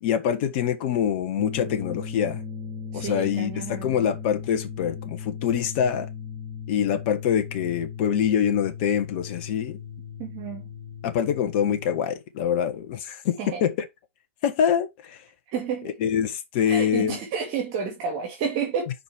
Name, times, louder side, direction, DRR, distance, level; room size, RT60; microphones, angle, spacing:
voice 1, 0.0-2.4 2.9-6.1 6.7-9.8 11.0-13.7 14.4-15.2 16.0-17.2, left 8 dB, 45° left, 1.3 m, -25 dB
sound 1, 1.4-12.0, left 6 dB, 20° right, 2.2 m, -37 dB
voice 2, 2.9-4.1 10.2-10.7 13.4-13.7 15.5-15.9 16.6-18.9, right 6 dB, 40° right, 2.0 m, -31 dB
5.2 x 4.4 x 4.5 m
figure-of-eight pair, 110°, 7 cm